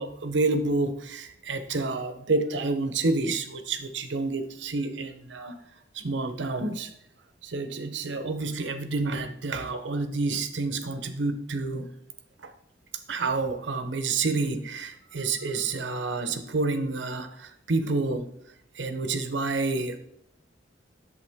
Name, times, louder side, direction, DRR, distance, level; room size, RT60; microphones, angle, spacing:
voice 1, 0.0-5.6 5.9-6.9 7.4-11.9 12.4-12.5 13.1-18.3 18.7-20.0, right 3 dB, 80° right, 9 dB, 0.8 m, -29 dB
8.1 x 6.9 x 3.5 m, 0.74 s
head